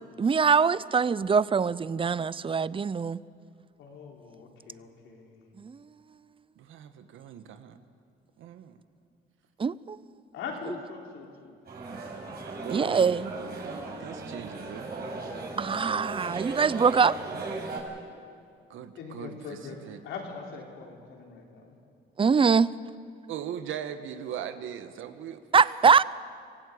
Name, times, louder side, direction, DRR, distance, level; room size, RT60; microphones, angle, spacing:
voice 1, 0.2-3.2 5.6-5.8 9.6-10.0 12.7-13.3 15.6-17.2 22.2-22.7 25.5-26.0, right 5 dB, 25° right, 19 dB, 0.6 m, -23 dB
voice 2, 3.8-5.5 10.3-11.6 19.0-21.8, left 5 dB, 90° left, 0 dB, 4.2 m, -41 dB
voice 3, 6.6-7.8 8.4-8.8 12.6-13.7 14.0-14.9 18.7-19.6 19.8-20.0 23.3-25.8, right 9 dB, 80° right, 10 dB, 1.4 m, -40 dB
sound 1, 11.7-17.8, right 3 dB, 50° right, 6.9 m, -37 dB
25.5 x 16.0 x 8.5 m, 2.3 s
cardioid pair, 90°, 20 cm